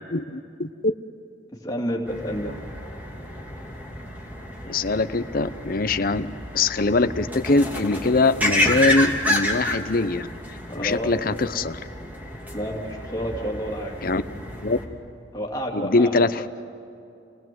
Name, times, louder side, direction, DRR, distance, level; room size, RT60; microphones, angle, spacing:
voice 1, 1.6-2.6 10.7-11.1 12.5-14.0 15.3-16.4, equal, 20° left, -2 dB, 2.9 m, -30 dB
sound 1, 2.1-14.9, left 1 dB, 10° right, 3.0 m, -30 dB
voice 2, 4.7-10.3 10.8-11.8 14.0-14.2 14.6-14.8 15.7-16.4, left 3 dB, 50° left, 11 dB, 0.8 m, -22 dB
29.5 x 19.0 x 7.8 m, 2.7 s
head